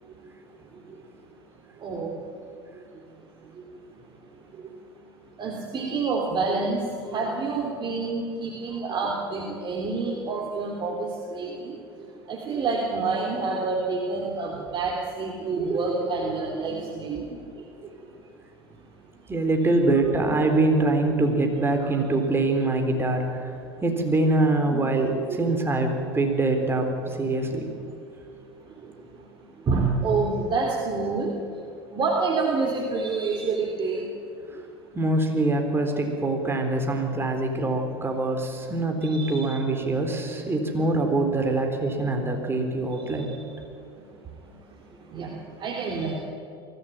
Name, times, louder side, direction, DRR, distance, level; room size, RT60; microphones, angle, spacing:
voice 1, 1.8-2.1 5.4-6.8 7.1-11.8 12.3-17.4 19.8-20.1 20.4-20.6 21.8-21.9 24.6-24.8 25.1-25.6 29.7-31.3 31.9-34.0 39.0-39.5 43.1-43.3 45.1-45.3 45.6-46.2, right 4 dB, 35° right, -1 dB, 3.3 m, -28 dB
voice 2, 19.3-23.5 23.8-27.7 34.9-43.3, right 2 dB, 20° right, 3 dB, 4.1 m, -24 dB
23.0 x 14.5 x 9.1 m, 2.4 s
hypercardioid pair, 85°, 13 cm